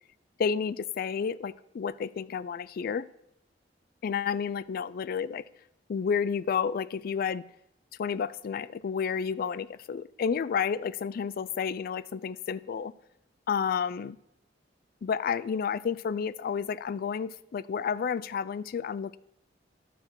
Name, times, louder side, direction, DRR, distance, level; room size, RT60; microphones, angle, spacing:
voice 1, 0.4-3.1 4.0-5.4 5.9-7.4 8.0-12.9 13.5-14.2 15.0-19.2, left 6 dB, 55° left, 18 dB, 0.3 m, -31 dB
12.0 x 5.7 x 4.4 m, 0.82 s
head